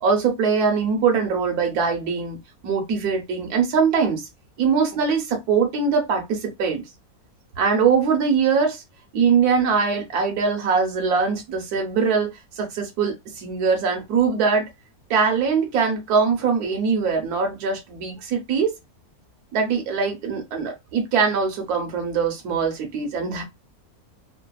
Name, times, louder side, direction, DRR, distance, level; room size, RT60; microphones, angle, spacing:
voice 1, 0.0-2.4 2.6-4.3 4.6-6.8 7.6-8.8 9.1-12.3 12.6-14.7 15.1-18.7 19.5-23.4, right 5 dB, 85° right, 1.3 m, -22 dB
3.2 x 2.0 x 2.2 m
omnidirectional pair, 1.6 m